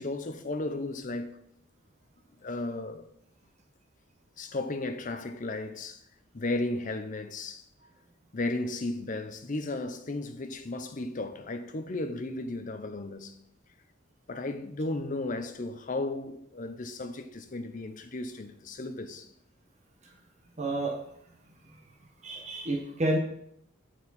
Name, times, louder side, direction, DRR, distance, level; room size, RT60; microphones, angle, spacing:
voice 1, 0.0-1.4 2.4-3.1 4.4-6.0 6.3-7.7 8.3-13.4 14.3-19.3, left 2 dB, 40° left, 0.6 m, -34 dB
voice 2, 20.6-20.9 22.2-23.2, right 1 dB, 35° right, 0.9 m, -29 dB
8.5 x 4.6 x 4.1 m
head